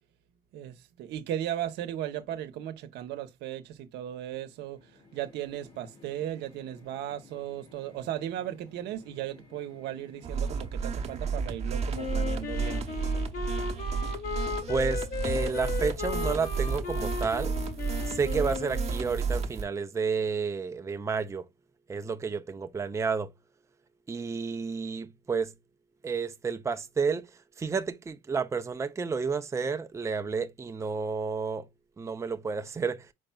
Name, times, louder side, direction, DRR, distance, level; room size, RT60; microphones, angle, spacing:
voice 1, 0.5-12.8, right 11 dB, 80° right, 0.8 m, -36 dB
sound 1, 4.2-13.3, left 3 dB, 85° left, 2.7 m, -56 dB
sound 2, 10.2-19.6, right 5 dB, 40° right, 0.9 m, -32 dB
Wind instrument woodwind instrument, 11.9-19.1, left 6 dB, 55° left, 1.3 m, -36 dB
voice 2, 14.7-17.5 18.1-21.5 21.9-23.3 24.1-25.5 26.0-27.3 27.6-31.7 32.0-33.1, right 5 dB, 15° right, 0.5 m, -31 dB
4.9 x 4.4 x 2.2 m
cardioid pair, 110°, 17 cm